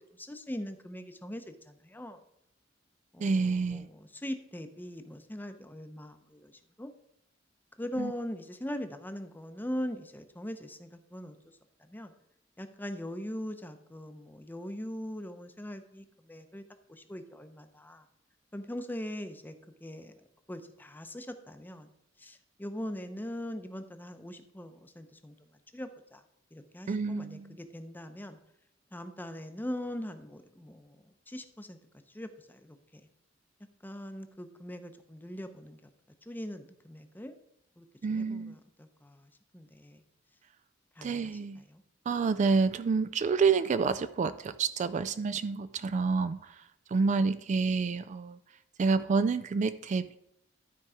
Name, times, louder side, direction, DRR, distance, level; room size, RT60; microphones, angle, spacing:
voice 1, 0.1-2.2 3.1-6.9 7.8-11.4 11.9-12.1 12.6-16.6 16.9-18.0 18.5-19.5 19.8-20.1 20.5-21.9 22.2-25.4 25.7-26.2 26.5-28.4 28.9-31.8 32.1-33.0 33.8-35.9 36.3-37.4 37.8-40.0 41.0-41.8 47.2-47.3, equal, 10° left, 8 dB, 0.7 m, -41 dB
voice 2, 3.2-3.9 8.0-8.1 26.9-27.6 38.0-38.6 41.0-41.6 42.1-46.6 46.9-48.4 48.8-50.2, right 4 dB, 40° right, 13 dB, 0.3 m, -28 dB
12.5 x 4.6 x 4.9 m, 0.80 s
head